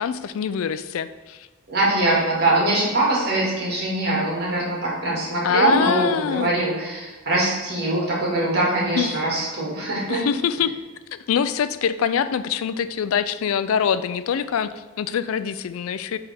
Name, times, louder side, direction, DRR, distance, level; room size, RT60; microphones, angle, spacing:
voice 1, 0.0-1.5 5.4-6.5 9.0-9.2 10.1-10.7 11.1-16.2, left 7 dB, 85° left, 13 dB, 0.3 m, -24 dB
voice 2, 1.7-10.2, right 2 dB, 50° right, -4 dB, 2.0 m, -22 dB
9.0 x 3.5 x 3.4 m, 1.3 s
head